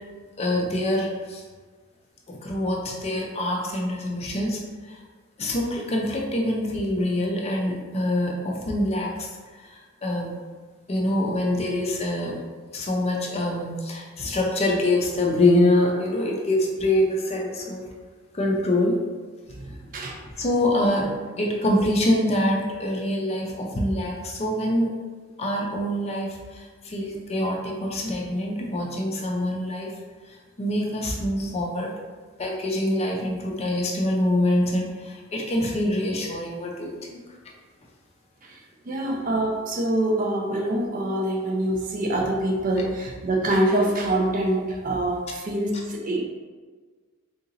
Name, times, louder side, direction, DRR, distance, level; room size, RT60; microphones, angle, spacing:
voice 1, 0.4-1.4 2.3-5.0 5.4-10.4 10.9-12.4 12.7-17.8 18.3-19.0 20.4-24.9 25.4-29.9 30.2-31.9 32.4-37.2, left 1 dB, 30° left, -1 dB, 0.5 m, -25 dB
voice 2, 19.6-20.2 38.4-38.6 38.9-46.2, right 1 dB, 40° right, 1 dB, 0.4 m, -25 dB
3.8 x 2.8 x 2.6 m, 1.4 s
head